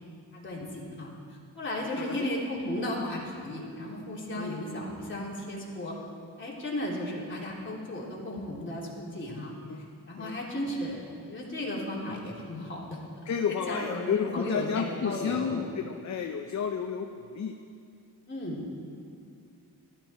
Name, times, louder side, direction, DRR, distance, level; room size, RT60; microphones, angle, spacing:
voice 1, 0.3-1.1 1.5-6.0 6.4-9.5 10.1-15.6 18.3-18.6, left 1 dB, 30° left, -5 dB, 3.2 m, -35 dB
voice 2, 2.0-2.3 4.4-4.6 9.7-9.9 10.2-10.3 13.3-17.5, left 7 dB, 50° left, 5 dB, 0.7 m, -31 dB
14.0 x 12.5 x 4.4 m, 2.4 s
cardioid pair, 95°, 37 cm